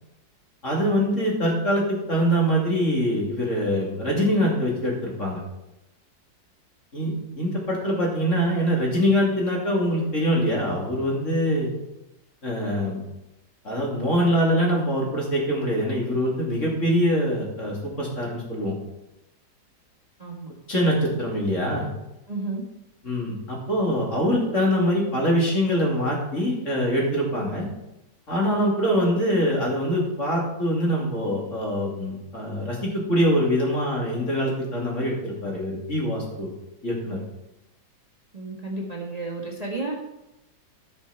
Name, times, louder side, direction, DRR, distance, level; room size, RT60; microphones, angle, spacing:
voice 1, 0.6-5.4 6.9-11.7 12.4-13.0 13.6-18.7 20.7-21.9 23.0-27.7 28.3-36.5 36.8-37.2, equal, 40° left, -3 dB, 3.0 m, -24 dB
voice 2, 22.3-22.6 38.3-39.9, right 3 dB, 20° right, -2 dB, 1.7 m, -32 dB
13.0 x 6.4 x 5.8 m, 0.91 s
omnidirectional pair, 2.0 m